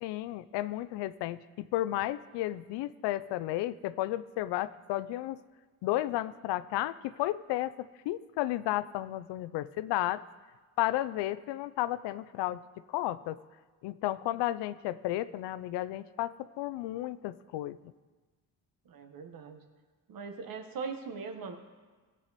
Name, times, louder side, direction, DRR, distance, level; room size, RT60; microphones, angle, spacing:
voice 1, 0.0-5.4 5.8-10.2 10.8-12.6 12.9-13.4 13.8-17.8, left 15 dB, 90° left, 15 dB, 0.5 m, -33 dB
voice 2, 18.9-19.6 20.1-21.5, right 5 dB, 55° right, 6 dB, 1.4 m, -40 dB
16.0 x 7.7 x 4.1 m, 1.4 s
cardioid pair, 95°, 40 cm